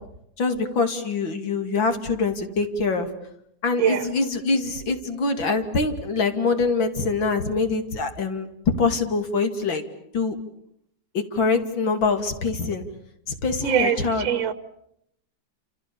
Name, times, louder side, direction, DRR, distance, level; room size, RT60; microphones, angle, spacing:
voice 1, 0.4-3.1 3.6-8.5 8.8-9.8 10.1-10.4 11.1-12.8 13.3-14.3, left 4 dB, 90° left, 6 dB, 3.4 m, -24 dB
voice 2, 13.6-14.5, right 9 dB, 75° right, 13 dB, 2.1 m, -23 dB
29.0 x 28.5 x 7.0 m, 0.76 s
omnidirectional pair, 2.1 m